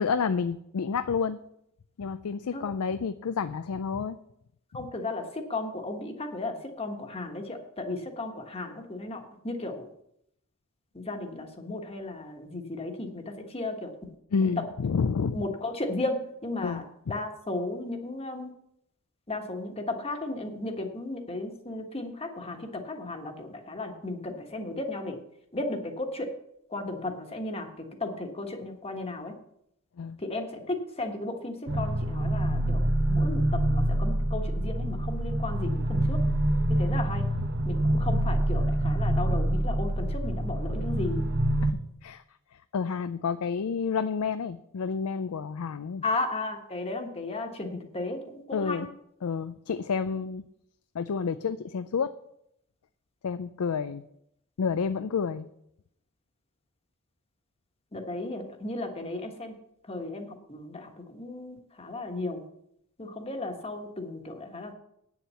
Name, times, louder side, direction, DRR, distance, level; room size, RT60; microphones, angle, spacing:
voice 1, 0.0-1.4 2.0-4.2 14.3-15.4 16.6-16.8 30.0-30.2 41.6-42.2 42.5-46.0 48.5-48.9 49.2-50.4 50.9-52.2 53.2-54.0 54.6-55.5, left 5 dB, 85° left, 12 dB, 0.4 m, -29 dB
voice 2, 4.7-9.9 10.9-13.9 14.3-14.6 15.3-16.2 16.4-16.8 17.1-18.5 19.3-25.2 25.5-26.3 26.7-29.3 30.2-36.2 36.7-37.3 37.6-41.3 46.0-48.8 57.9-59.5 59.8-62.4 63.0-64.7, left 2 dB, 25° left, 5 dB, 1.3 m, -35 dB
sound 1, 31.7-41.7, right 1 dB, 50° right, 1.0 m, -26 dB
9.3 x 7.2 x 6.9 m, 0.76 s
head